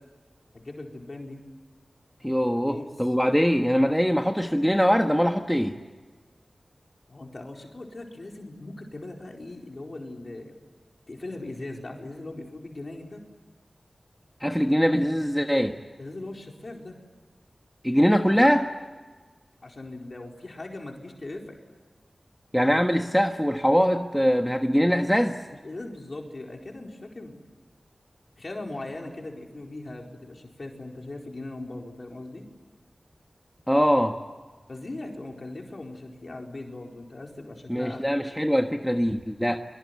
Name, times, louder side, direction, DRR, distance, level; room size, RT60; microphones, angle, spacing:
voice 1, 0.5-1.4 2.5-3.1 7.1-10.5 11.1-13.2 16.0-17.0 19.6-21.5 25.6-27.4 28.4-32.4 34.7-38.2, left 2 dB, 50° left, 1 dB, 4.5 m, -39 dB
voice 2, 2.2-5.8 14.4-15.7 17.8-18.7 22.5-25.4 33.7-34.2 37.7-39.6, equal, ahead, 4 dB, 1.4 m, -22 dB
25.5 x 24.0 x 9.6 m, 1.3 s
wide cardioid pair, 65°, 0 cm